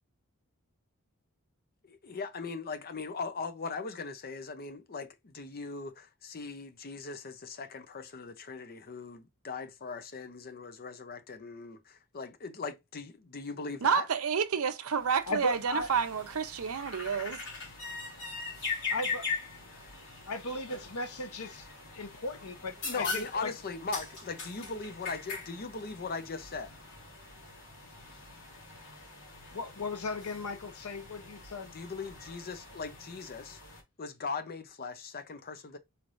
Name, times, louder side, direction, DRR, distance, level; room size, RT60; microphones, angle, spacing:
voice 1, 1.8-14.0 20.7-20.8 22.8-26.7 31.7-33.6 34.0-35.8, left 4 dB, 45° left, 0.6 m, -39 dB
voice 2, 13.8-17.4, right 6 dB, 70° right, 0.6 m, -29 dB
sound 1, 15.0-33.8, left 4 dB, 60° left, 2.3 m, -42 dB
voice 3, 15.3-15.9 18.9-19.3 20.3-21.7 21.9-23.5 29.5-31.7, left 2 dB, 85° left, 0.9 m, -36 dB
4.3 x 3.2 x 2.5 m
head